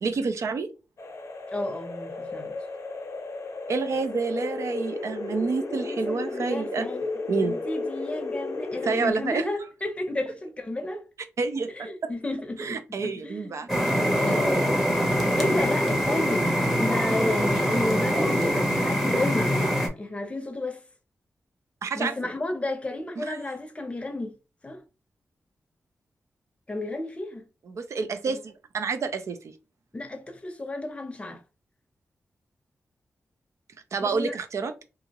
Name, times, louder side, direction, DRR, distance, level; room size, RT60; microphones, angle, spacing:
voice 1, 0.0-0.7 3.7-6.9 7.3-7.6 8.8-9.5 11.4-12.1 12.6-13.7 21.8-22.2 23.2-23.4 27.7-29.4 33.9-34.7, right 4 dB, 70° right, 0.5 m, -28 dB
sound 1, 1.0-9.1, left 3 dB, 60° left, 0.6 m, -34 dB
voice 2, 1.5-2.6 5.8-7.1 7.4-11.0 11.7-13.5 14.2-14.9 15.4-16.5 16.8-20.8 22.0-24.3 24.6-24.8 26.7-27.4 29.9-31.4 34.0-34.4, left 2 dB, 20° left, 0.6 m, -32 dB
sound 2, 13.7-19.9, equal, 5° right, 0.8 m, -24 dB
2.8 x 2.4 x 2.9 m
wide cardioid pair, 105°, 5 cm